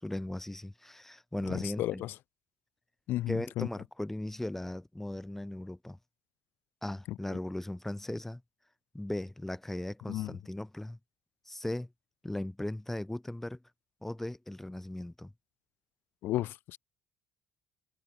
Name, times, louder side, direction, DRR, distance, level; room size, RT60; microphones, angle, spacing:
voice 1, 0.0-2.0 3.3-6.0 6.8-8.4 8.9-11.0 11.4-11.9 12.2-13.6 14.0-15.3, left 1 dB, 10° left, 4.4 m, -37 dB
voice 2, 1.5-2.1 3.1-3.7 7.3-7.4 10.1-10.4 16.2-16.8, left 15 dB, 65° left, 1.1 m, -33 dB
hypercardioid pair, 70°, 4 cm